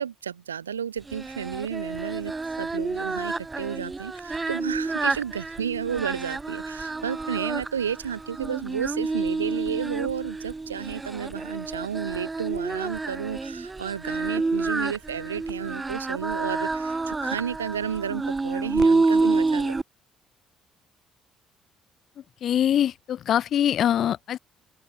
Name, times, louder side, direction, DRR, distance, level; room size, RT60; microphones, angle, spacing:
voice 1, 0.0-2.3 2.6-19.8, right 8 dB, 85° right, 3.2 m, -32 dB
Singing, 1.1-19.8, right 3 dB, 25° right, 4.5 m, -28 dB
voice 2, 22.4-24.4, left 10 dB, 55° left, 1.4 m, -23 dB
open air
figure-of-eight pair, 50°, 0 cm